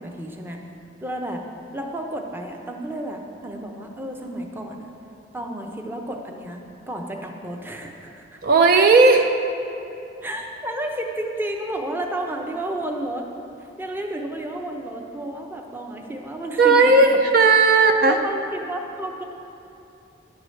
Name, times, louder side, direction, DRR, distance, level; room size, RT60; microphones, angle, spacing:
voice 1, 0.0-0.6 1.0-1.4 1.7-4.9 5.3-8.4 10.2-13.3 13.8-16.9 18.0-19.2, right 1 dB, 10° right, 2 dB, 0.7 m, -31 dB
voice 2, 8.4-9.3 16.6-18.2, right 3 dB, 55° right, 5 dB, 0.4 m, -15 dB
10.5 x 4.8 x 7.6 m, 2.8 s
head